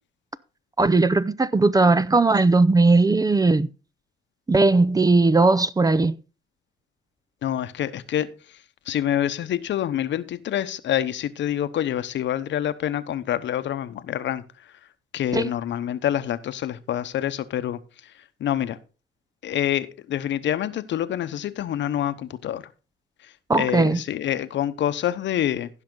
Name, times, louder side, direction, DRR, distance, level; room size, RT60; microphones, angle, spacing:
voice 1, 0.8-3.7 4.5-6.2 15.3-15.5 23.5-24.0, right 3 dB, 20° right, 0.5 m, -18 dB
voice 2, 7.4-8.3 8.9-14.4 15.1-17.8 18.4-18.8 19.4-22.6 23.5-25.7, left 11 dB, 70° left, 0.9 m, -26 dB
15.5 x 5.8 x 3.8 m
cardioid pair, 90°, 20 cm